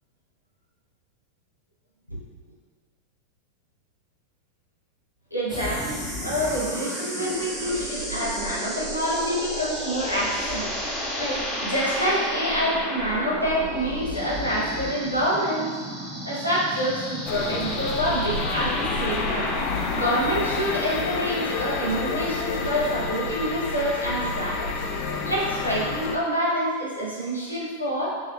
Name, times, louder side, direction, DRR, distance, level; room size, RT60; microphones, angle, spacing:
voice 1, 5.3-15.7 16.2-19.5 19.9-24.7 25.2-28.1, equal, 90° left, -6 dB, 1.1 m, -27 dB
sound 1, 5.5-22.3, equal, 5° right, 0.8 m, -32 dB
sound 2, 17.3-26.2, left 4 dB, 40° left, 0.4 m, -29 dB
5.6 x 2.7 x 2.4 m, 1.5 s
figure-of-eight pair, 90°, 0 cm